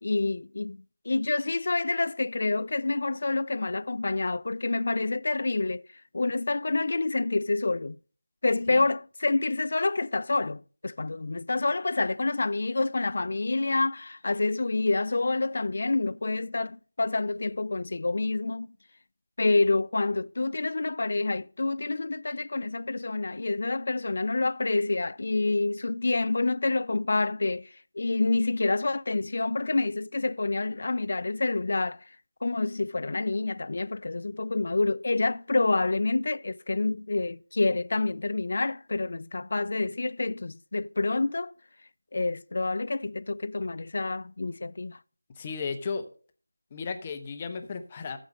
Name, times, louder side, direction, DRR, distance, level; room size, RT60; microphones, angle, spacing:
voice 1, 0.0-5.9 6.1-8.0 8.4-18.7 19.4-32.0 32.4-41.5 42.1-45.0, left 3 dB, 50° left, 0.4 m, -28 dB
voice 2, 45.4-46.1 46.7-48.2, left 5 dB, 20° left, 0.9 m, -34 dB
14.0 x 5.1 x 6.3 m
figure-of-eight pair, 170°, 0 cm